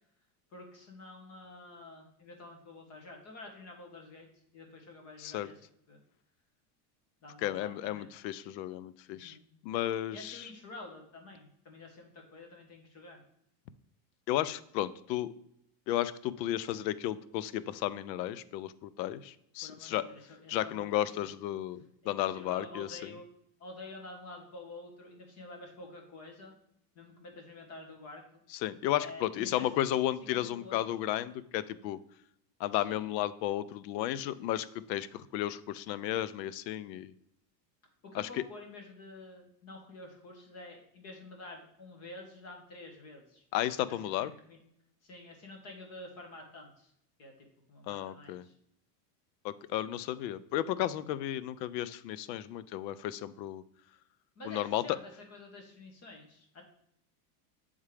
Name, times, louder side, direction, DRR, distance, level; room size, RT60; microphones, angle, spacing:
voice 1, 0.5-4.3 4.5-5.6 5.9-6.0 7.2-8.1 9.1-9.5 10.1-13.2 19.6-21.3 22.0-23.3 23.6-26.5 26.9-28.4 29.0-29.7 30.3-30.9 32.7-33.2 38.0-43.4 43.9-44.6 45.0-46.9 47.2-47.3 47.7-48.5 54.3-56.6, left 2 dB, 30° left, 2 dB, 1.1 m, -49 dB
voice 2, 5.2-5.5 7.4-9.4 9.6-10.5 14.3-15.3 15.9-20.0 20.5-23.1 28.6-32.0 32.6-37.1 38.1-38.4 43.5-44.3 47.9-48.4 49.4-53.6 54.5-55.0, left 13 dB, 90° left, 16 dB, 0.6 m, -33 dB
8.2 x 3.6 x 3.2 m, 0.73 s
supercardioid pair, 155°, 49 cm